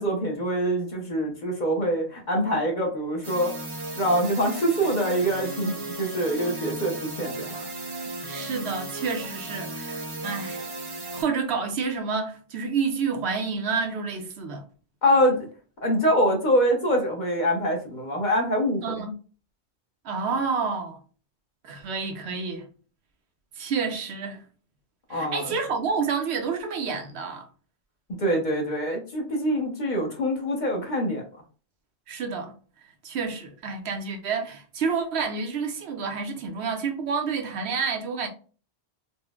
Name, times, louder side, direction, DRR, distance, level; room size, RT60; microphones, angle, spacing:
voice 1, 0.0-3.5 4.0-7.7 15.0-15.4 15.8-19.1 25.1-25.6 28.2-31.2, equal, 45° left, 0.9 m, -25 dB
sound 1, 3.2-11.2, right 2 dB, 30° right, 0.5 m, -35 dB
voice 2, 8.3-10.7 11.1-14.7 18.8-19.1 20.0-21.0 21.6-22.7 23.6-24.4 25.1-27.5 32.1-32.5 33.0-38.3, right 5 dB, 75° right, 0.9 m, -29 dB
4.1 x 2.1 x 2.3 m
omnidirectional pair, 1.1 m